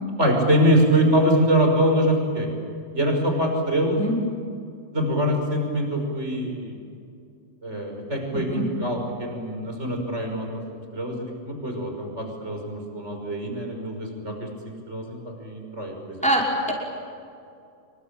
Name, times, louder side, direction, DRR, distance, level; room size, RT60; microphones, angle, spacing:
voice 1, 0.2-2.5 2.9-4.0 4.9-6.8 7.6-10.6 10.9-16.2, equal, 55° right, 3 dB, 6.0 m, -24 dB
voice 2, 8.3-8.6 16.2-16.7, right 1 dB, 5° left, -2 dB, 5.4 m, -23 dB
27.0 x 24.5 x 9.0 m, 2.4 s
omnidirectional pair, 1.4 m